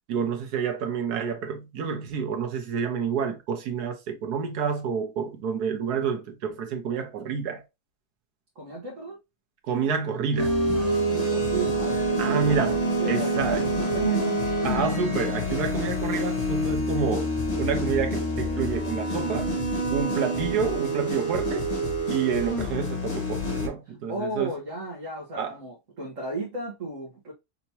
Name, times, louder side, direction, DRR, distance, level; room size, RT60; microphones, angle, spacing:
voice 1, 0.1-7.6 9.6-10.9 12.2-12.8 13.1-13.7 14.6-19.6 19.9-21.6 22.1-24.5 25.4-25.6, right 6 dB, 90° right, 1.5 m, -29 dB
voice 2, 8.5-9.2 10.9-14.4 24.1-27.3, right 3 dB, 55° right, 1.5 m, -34 dB
sound 1, 10.4-23.7, equal, 30° left, 1.1 m, -27 dB
5.8 x 2.9 x 2.8 m
omnidirectional pair, 1.6 m